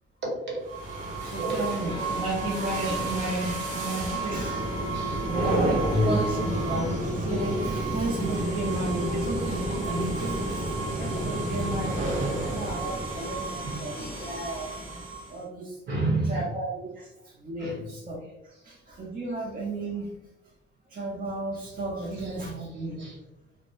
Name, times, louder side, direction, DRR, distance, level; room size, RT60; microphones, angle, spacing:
voice 1, 0.2-0.6 1.2-2.0 2.8-3.0 3.2-3.5 3.8-4.0 4.9-5.3 5.9-6.3 6.7-6.8 10.8-12.7 13.6-13.9 15.9-16.4 17.6-17.9 21.9-22.0 23.0-23.1, right 1 dB, 65° right, -2 dB, 1.1 m, -31 dB
sound 1, 0.6-15.4, right 1 dB, 85° right, 0.8 m, -30 dB
voice 2, 1.2-4.9 5.2-14.7 15.3-15.8 16.2-20.1 20.9-23.1, right 2 dB, 45° right, -4 dB, 0.6 m, -33 dB
Wind instrument woodwind instrument, 1.8-7.1, left 1 dB, 25° left, 0.6 m, -40 dB
2.2 x 2.0 x 3.0 m, 0.87 s
cardioid pair, 90°, 20 cm